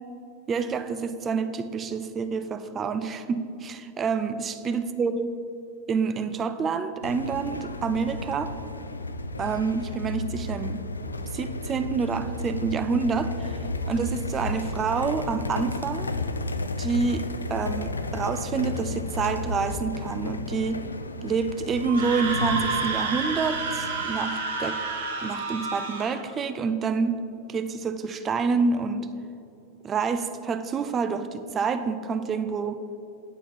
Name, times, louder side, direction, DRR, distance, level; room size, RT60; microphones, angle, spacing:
voice 1, 0.5-5.3 5.9-8.5 9.4-10.8 11.3-13.6 13.9-16.1 16.8-20.8 21.2-24.8 25.2-29.1 29.8-33.0, right 5 dB, 25° right, 10 dB, 0.4 m, -28 dB
sound 1, 7.0-24.0, left 2 dB, 75° left, 0.3 m, -33 dB
Screaming, 21.8-26.2, right 3 dB, 60° right, 0.9 m, -30 dB
8.1 x 5.7 x 4.3 m, 2.7 s
figure-of-eight pair, 90°, 0 cm